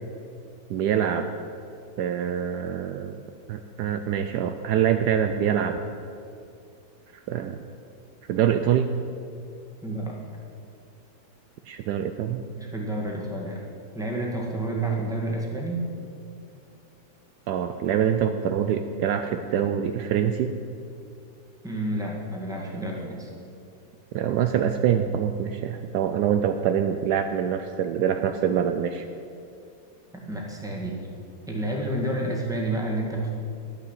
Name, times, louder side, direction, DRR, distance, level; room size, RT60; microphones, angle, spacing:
voice 1, 0.7-1.3 2.0-3.2 3.5-5.8 7.3-7.6 8.3-8.9 11.7-12.4 17.5-20.5 24.1-29.1, right 9 dB, 75° right, 7 dB, 1.1 m, -25 dB
voice 2, 9.8-10.2 12.5-13.6 13.9-15.9 21.6-23.3 30.2-31.0 31.5-33.3, right 1 dB, ahead, -2 dB, 1.7 m, -29 dB
11.5 x 6.7 x 8.1 m, 2.5 s
omnidirectional pair, 1.9 m